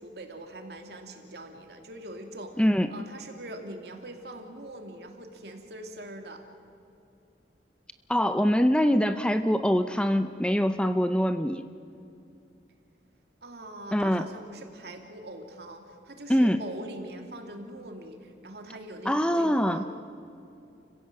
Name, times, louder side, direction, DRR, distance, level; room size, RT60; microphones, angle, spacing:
voice 1, 0.0-2.6 2.9-6.4 13.4-19.9, right 1 dB, 65° right, 4 dB, 2.7 m, -42 dB
voice 2, 2.6-2.9 8.1-11.7 13.9-14.3 16.3-16.6 19.1-19.8, equal, 5° left, 9 dB, 0.6 m, -24 dB
29.5 x 16.5 x 7.6 m, 2.6 s
head